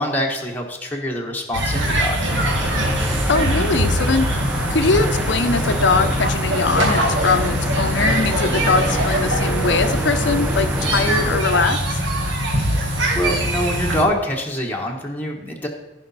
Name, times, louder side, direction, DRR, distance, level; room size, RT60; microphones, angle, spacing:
voice 1, 0.0-2.2 12.5-12.6 13.1-15.7, left 1 dB, 10° left, -1 dB, 1.2 m, -24 dB
sound 1, 1.5-14.0, equal, 70° right, 1.9 m, -22 dB
sound 2, 2.3-11.4, right 1 dB, 5° right, 0.7 m, -28 dB
voice 2, 3.3-4.3 4.7-12.0, left 4 dB, 70° left, 9 dB, 0.8 m, -21 dB
15.5 x 5.2 x 4.2 m, 1.1 s
head